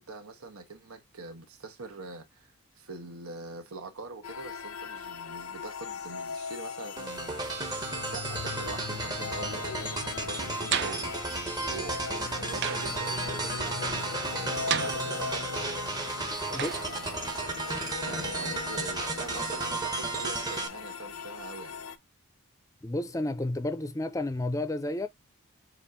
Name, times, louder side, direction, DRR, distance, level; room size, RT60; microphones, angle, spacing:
voice 1, 0.0-7.4 8.0-11.1 11.7-15.7 16.4-17.4 18.0-21.8, right 3 dB, 75° right, 1.1 m, -43 dB
sound 1, 4.2-22.0, left 6 dB, 75° left, 0.6 m, -39 dB
sound 2, 7.0-20.7, right 3 dB, 20° right, 0.8 m, -34 dB
sound 3, 10.7-11.2 12.6-13.0 14.7-15.5 16.6-17.0, right 8 dB, 50° right, 0.5 m, -32 dB
voice 2, 22.8-25.1, left 1 dB, 15° left, 0.5 m, -31 dB
7.2 x 2.6 x 2.7 m
head